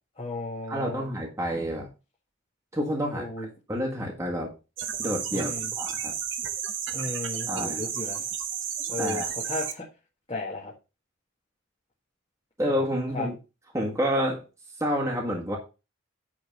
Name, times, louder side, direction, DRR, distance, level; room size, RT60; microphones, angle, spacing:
voice 1, 0.2-1.1 3.1-3.5 5.3-5.7 6.9-8.3 8.9-9.8 10.3-10.7 13.1-13.3, left 2 dB, 30° left, -4 dB, 1.8 m, -34 dB
voice 2, 0.7-1.9 2.7-3.3 3.7-4.5 5.0-6.1 7.5-7.8 9.0-9.3 12.6-13.4 13.7-14.4 14.8-15.6, equal, 15° right, -2 dB, 1.7 m, -28 dB
sound 1, 4.8-9.7, right 8 dB, 55° right, 1.0 m, -32 dB
9.3 x 4.1 x 5.3 m, 0.30 s
head